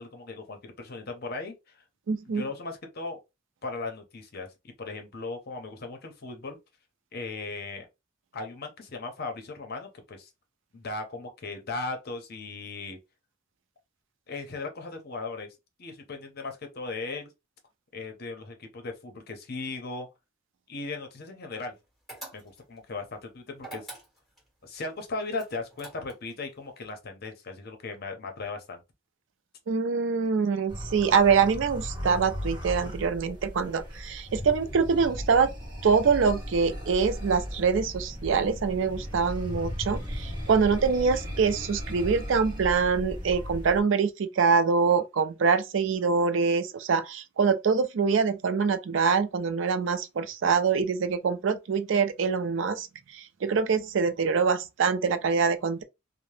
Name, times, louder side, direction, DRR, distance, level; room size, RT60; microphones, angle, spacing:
voice 1, 0.0-1.8 2.3-3.2 3.6-6.6 7.1-7.9 8.3-10.3 10.7-13.0 14.3-15.5 15.8-17.3 17.9-20.1 20.7-21.7 22.3-23.9 24.6-28.8, left 3 dB, 50° left, 0.7 m, -37 dB
voice 2, 2.1-2.4 29.7-35.5 35.8-55.8, right 5 dB, 65° right, 0.4 m, -25 dB
sound 1, 22.1-22.8 23.6-24.5 25.4-26.3, right 2 dB, ahead, 1.6 m, -44 dB
sound 2, 30.7-43.8, equal, 20° right, 1.1 m, -37 dB
2.7 x 2.0 x 3.1 m
head